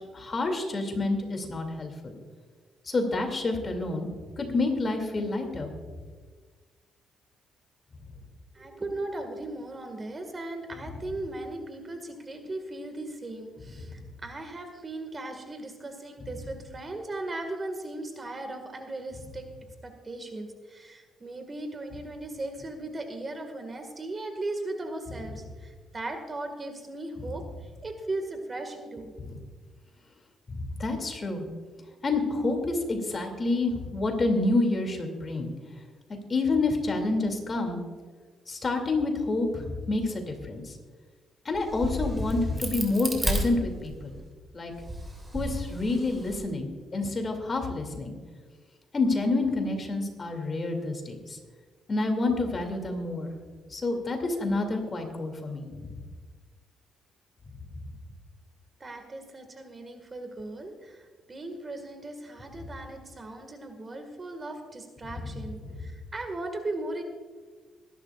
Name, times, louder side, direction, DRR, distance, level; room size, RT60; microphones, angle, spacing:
voice 1, 0.1-2.2 2.9-4.1 4.4-5.7 29.2-29.3 30.5-31.4 32.0-35.5 36.3-37.8 38.5-40.7 41.4-44.2 44.5-44.7 45.3-48.1 48.9-51.4 51.9-53.3 53.7-55.9 65.2-65.3, left 2 dB, 35° left, 4 dB, 2.5 m, -28 dB
voice 2, 8.5-19.5 19.8-27.4 27.8-29.4 58.8-67.0, right 2 dB, 30° right, 6 dB, 1.8 m, -37 dB
Crack, 41.5-44.2 44.7-46.4, right 1 dB, 15° right, 3.1 m, -32 dB
22.0 x 11.5 x 2.4 m, 1.5 s
cardioid pair, 90°, 0 cm